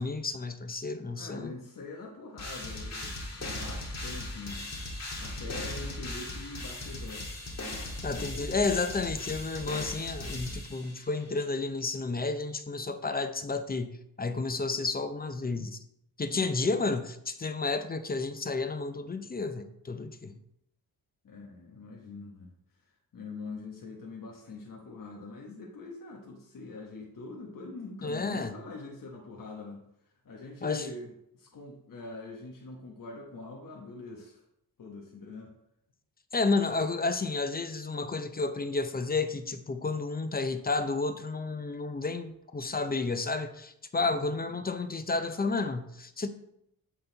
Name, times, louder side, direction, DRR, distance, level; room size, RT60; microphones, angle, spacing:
voice 1, 0.0-1.5 8.0-15.8 16.2-20.4 28.0-28.6 30.6-30.9 36.3-46.3, left 3 dB, 25° left, 0.6 m, -31 dB
voice 2, 1.1-4.7 5.2-7.3 16.3-16.6 20.3-20.4 21.2-22.5 23.1-29.8 30.2-34.4 34.8-35.5 44.1-44.3, left 3 dB, 60° left, 1.2 m, -44 dB
sound 1, 2.4-11.2, left 1 dB, 45° left, 1.7 m, -38 dB
7.9 x 4.0 x 3.9 m
cardioid pair, 75°, 37 cm